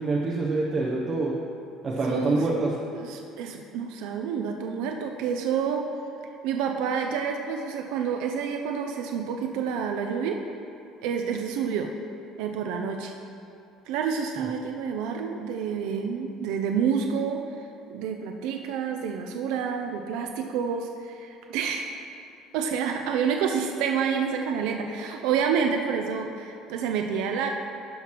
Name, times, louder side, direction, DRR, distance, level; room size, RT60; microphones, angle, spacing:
voice 1, 0.0-1.3 1.8-2.7, right 3 dB, 25° right, -3 dB, 0.6 m, -26 dB
voice 2, 2.0-2.4 2.9-5.8 6.4-10.4 11.0-11.9 12.4-13.1 13.9-17.4 17.9-21.9 22.5-27.5, right 7 dB, 80° right, 3 dB, 0.4 m, -28 dB
11.5 x 5.7 x 3.0 m, 2.6 s
cardioid pair, 165°, 0 cm